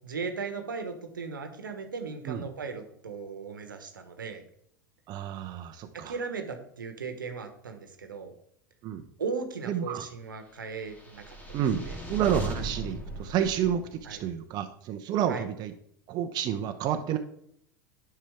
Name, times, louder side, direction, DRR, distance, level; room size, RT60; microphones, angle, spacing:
voice 1, 0.0-4.4 5.9-8.3 9.2-11.4 11.8-12.0 14.0-14.2 15.3-15.4, right 5 dB, 80° right, 6 dB, 1.2 m, -37 dB
voice 2, 5.1-6.2 8.8-9.0 9.7-10.1 11.5-15.7 16.1-17.2, right 9 dB, 40° right, 7 dB, 0.7 m, -30 dB
sound 1, 10.8-14.2, right 2 dB, 15° left, 2.2 m, -37 dB
10.0 x 5.7 x 3.6 m, 0.70 s
figure-of-eight pair, 85°, 11 cm